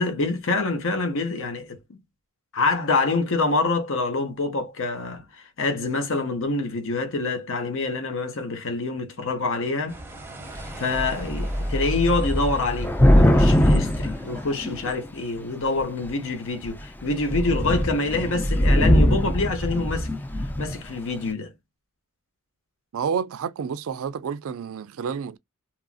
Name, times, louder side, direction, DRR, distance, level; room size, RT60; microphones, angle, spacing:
voice 1, 0.0-2.0 2.5-10.0 10.8-20.1 20.6-21.5, left 3 dB, 65° left, 0.9 m, -26 dB
sound 1, 9.9-15.0, right 2 dB, 10° right, 0.7 m, -43 dB
Thunder / Rain, 10.5-10.7 10.9-15.1 15.8-16.2 16.7-16.8 17.1-20.8, equal, 10° left, 0.3 m, -21 dB
voice 2, 22.9-25.4, right 6 dB, 65° right, 0.4 m, -29 dB
2.9 x 2.5 x 2.4 m
head